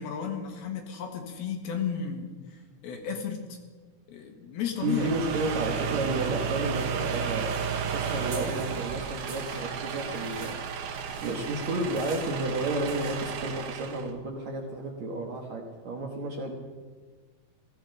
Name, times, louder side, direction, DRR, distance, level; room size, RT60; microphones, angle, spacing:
voice 1, 0.0-3.6 4.1-5.2, left 7 dB, 75° left, 3 dB, 3.3 m, -34 dB
voice 2, 4.8-7.6 7.9-10.6 11.2-16.6, right 2 dB, 60° right, 1 dB, 2.1 m, -31 dB
sound 1, 4.8-14.1, right 7 dB, 75° right, 3.0 m, -33 dB
sound 2, 6.7-13.4, right 3 dB, 40° right, 2.7 m, -48 dB
15.5 x 15.0 x 5.3 m, 1.5 s
omnidirectional pair, 4.6 m